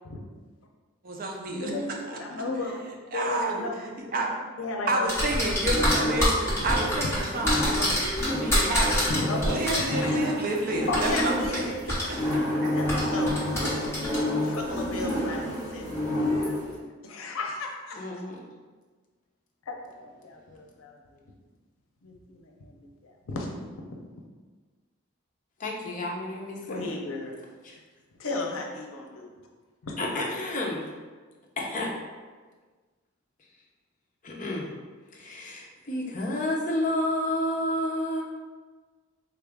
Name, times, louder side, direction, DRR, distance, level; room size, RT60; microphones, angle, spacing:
voice 1, 1.0-1.7 2.1-2.2 3.1-3.7 4.1-4.3 4.9-9.0 9.4-11.7 12.0-12.2 12.6-12.8, right 2 dB, 45° right, 0 dB, 0.5 m, -29 dB
voice 2, 1.6-2.8 3.1-4.1 4.6-6.0 6.6-6.7 9.1-10.2 10.9-12.0 12.7-15.8 16.1-16.7 17.0-18.2 19.7-21.2 22.0-23.8 26.7-27.3 28.2-29.3 29.8-30.0, left 2 dB, 90° left, 1 dB, 0.6 m, -35 dB
sound 1, 5.1-9.8 10.9-11.6 11.9-12.0 12.9-14.2, left 1 dB, 15° left, 1.0 m, -26 dB
sound 2, 5.5-16.7, left 1 dB, 20° right, 0.9 m, -29 dB
voice 3, 17.9-18.4 25.6-26.9 27.6-27.8 30.0-30.9 31.6-31.9 34.2-34.7 35.1-38.2, left 1 dB, 40° left, -1 dB, 0.5 m, -30 dB
3.7 x 2.4 x 3.4 m, 1.4 s
head